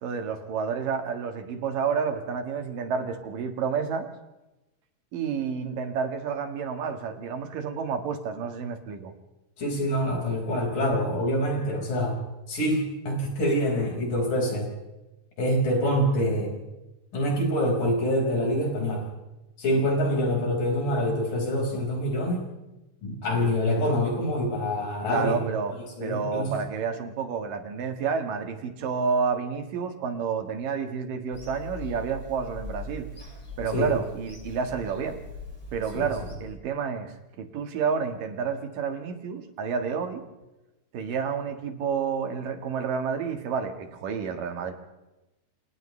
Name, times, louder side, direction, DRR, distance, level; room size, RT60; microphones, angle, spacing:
voice 1, 0.0-4.1 5.1-9.1 23.3-23.5 25.1-25.8 26.0-33.1 33.6-35.2 35.7-40.2 40.9-44.7, right 6 dB, 85° right, 5 dB, 3.5 m, -30 dB
voice 2, 9.6-12.2 12.5-14.7 15.4-16.6 17.1-19.1 19.6-22.5 23.0-25.4 25.7-26.5 33.7-33.9 35.9-36.1, equal, 80° left, -1 dB, 7.1 m, -26 dB
Bird vocalization bird call bird song / Telephone, 31.3-36.4, left 2 dB, 10° left, 4.3 m, -41 dB
29.5 x 27.0 x 3.3 m, 1.0 s
omnidirectional pair, 3.8 m